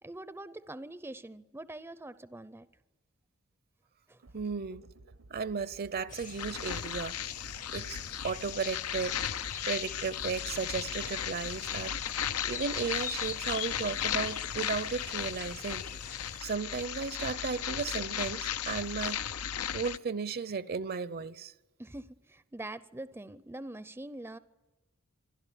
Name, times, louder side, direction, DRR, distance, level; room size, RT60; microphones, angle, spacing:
voice 1, 0.0-2.7 4.1-4.2 21.8-24.4, right 1 dB, 10° right, 0.6 m, -44 dB
sound 1, 4.2-12.4, right 2 dB, 70° right, 1.0 m, -57 dB
voice 2, 4.3-4.9 5.3-7.2 7.7-8.0 8.2-9.2 9.7-15.8 16.4-19.4 19.7-21.5, right 5 dB, 45° right, 0.7 m, -35 dB
sound 2, 6.1-16.4, left 7 dB, 40° left, 0.8 m, -45 dB
sound 3, 6.4-20.0, left 9 dB, 85° left, 0.7 m, -36 dB
26.0 x 11.5 x 10.0 m
head